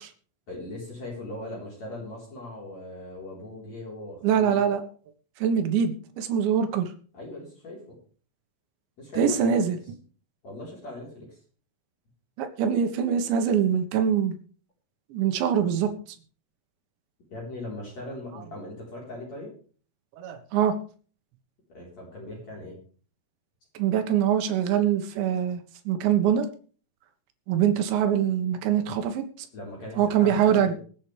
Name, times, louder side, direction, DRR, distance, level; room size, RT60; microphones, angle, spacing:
voice 1, 0.5-4.6 7.1-8.0 9.0-9.7 10.4-11.4 17.3-19.5 21.7-22.8 29.5-30.7, left 1 dB, 40° left, -3 dB, 5.1 m, -39 dB
voice 2, 4.2-4.9 5.4-6.9 9.2-9.8 12.4-14.3 15.1-15.9 20.2-20.8 23.8-25.6 25.9-26.5 27.5-29.3 30.0-30.7, right 8 dB, 85° right, 7 dB, 3.7 m, -23 dB
23.5 x 8.6 x 3.4 m, 0.41 s
omnidirectional pair, 5.1 m